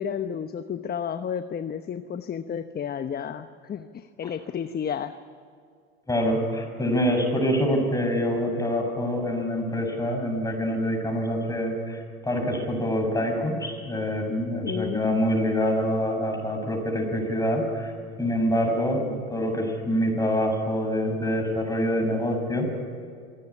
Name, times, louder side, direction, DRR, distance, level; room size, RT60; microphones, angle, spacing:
voice 1, 0.0-5.2 14.6-15.2, left 8 dB, 25° left, 10 dB, 1.1 m, -31 dB
voice 2, 6.1-17.9 18.2-22.7, equal, 10° left, 3 dB, 7.0 m, -26 dB
25.5 x 17.5 x 9.9 m, 2.2 s
hypercardioid pair, 85°, 35 cm